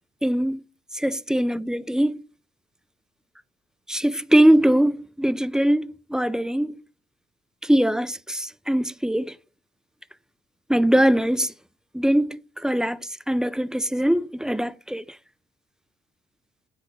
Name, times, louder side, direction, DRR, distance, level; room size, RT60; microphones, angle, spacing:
voice 1, 0.2-0.6 0.9-2.2 3.9-6.8 7.6-9.4 10.7-11.5 11.9-15.0, right 1 dB, 5° right, 0.3 m, -22 dB
7.7 x 4.8 x 6.1 m
cardioid pair, 90°, 20 cm